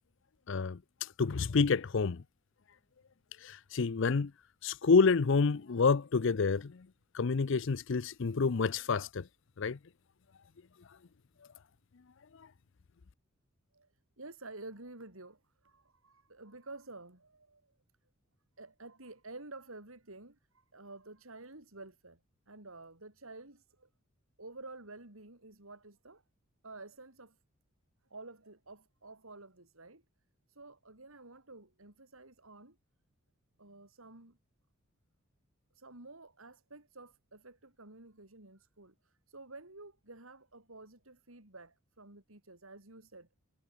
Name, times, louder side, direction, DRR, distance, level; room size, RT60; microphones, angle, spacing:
voice 1, 0.5-2.2 3.4-4.3 4.6-6.9 7.1-9.3 9.6-9.8 12.3-12.5, left 4 dB, 60° left, 0.5 m, -28 dB
voice 2, 13.7-17.8 18.6-22.2 22.5-23.9 24.4-26.2 26.6-27.4 28.1-30.0 30.5-32.8 33.6-34.4 35.7-43.3, right 2 dB, 80° right, 4.7 m, -51 dB
head